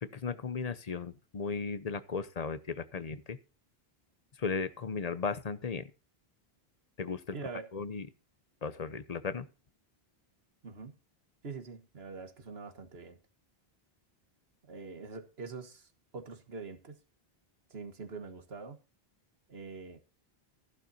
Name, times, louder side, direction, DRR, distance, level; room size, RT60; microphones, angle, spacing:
voice 1, 0.0-3.4 4.4-5.9 7.0-7.4 7.7-8.1 8.6-9.5, left 5 dB, 40° left, 0.8 m, -36 dB
voice 2, 7.3-7.7 10.6-10.9 11.4-13.2 14.7-17.0 17.7-18.8 19.5-20.0, right 4 dB, 80° right, 1.7 m, -44 dB
14.5 x 11.0 x 2.8 m
omnidirectional pair, 1.0 m